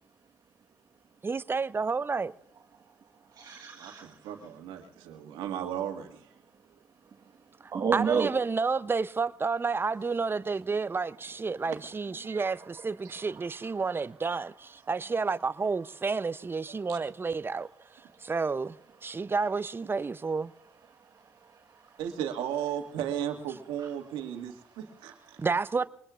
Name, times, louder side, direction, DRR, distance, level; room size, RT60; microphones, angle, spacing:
voice 1, 1.2-2.3 7.6-17.7 18.2-18.7 19.0-20.5 25.4-25.8, right 4 dB, 30° right, 0.6 m, -30 dB
voice 2, 3.0-4.2 7.2-7.3 7.7-8.3 12.2-12.9 13.1-13.4 18.1-18.3 19.1-19.3 20.9-22.0 23.8-23.9 25.3-25.5, right 6 dB, 55° right, 1.4 m, -34 dB
voice 3, 3.8-6.3 11.7-11.8 12.1-12.5 13.0-13.1 14.9-15.2 16.9-17.0 22.0-25.4, right 10 dB, 90° right, 1.8 m, -36 dB
24.0 x 20.0 x 2.5 m
supercardioid pair, 60°, 8 cm